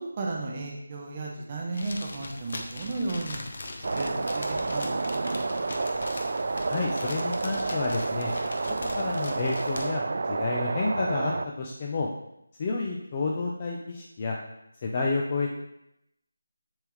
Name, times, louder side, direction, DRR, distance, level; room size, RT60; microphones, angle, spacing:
voice 1, 0.0-3.4 3.9-5.1, right 2 dB, 20° right, -1 dB, 0.8 m, -34 dB
sound 1, 1.7-9.9, left 2 dB, 40° left, 0.9 m, -40 dB
sound 2, 3.8-11.5, right 3 dB, 45° right, 0.3 m, -30 dB
voice 2, 6.7-8.3 8.9-11.3 11.6-12.1 12.6-14.4 14.8-15.5, left 3 dB, 20° left, -1 dB, 0.5 m, -30 dB
10.5 x 3.5 x 3.1 m, 0.82 s
figure-of-eight pair, 175°, 0 cm